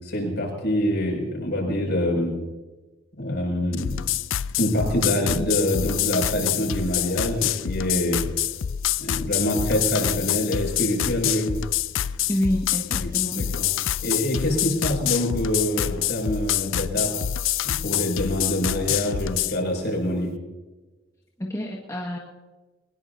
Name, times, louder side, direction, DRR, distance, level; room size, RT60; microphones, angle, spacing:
voice 1, 0.0-2.4 3.2-3.9 4.6-8.3 9.0-11.5 13.0-13.7 14.0-17.1 17.6-20.3, left 1 dB, 55° left, 0 dB, 6.4 m, -25 dB
sound 1, 3.7-19.6, left 11 dB, 70° left, 0.5 m, -27 dB
voice 2, 12.3-13.5 21.4-22.2, equal, 15° left, -2 dB, 1.7 m, -27 dB
23.0 x 20.5 x 2.8 m, 1.2 s
head